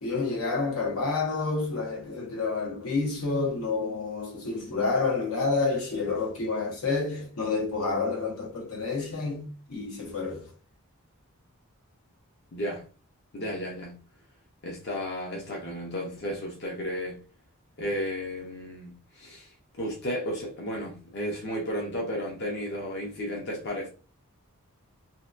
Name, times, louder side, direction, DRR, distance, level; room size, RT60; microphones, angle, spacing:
voice 1, 0.0-10.5, left 4 dB, 80° left, 0.9 m, -29 dB
voice 2, 12.5-12.8 13.3-14.0 14.6-17.2 17.8-23.9, equal, 50° left, 0.6 m, -33 dB
2.7 x 2.1 x 2.4 m
head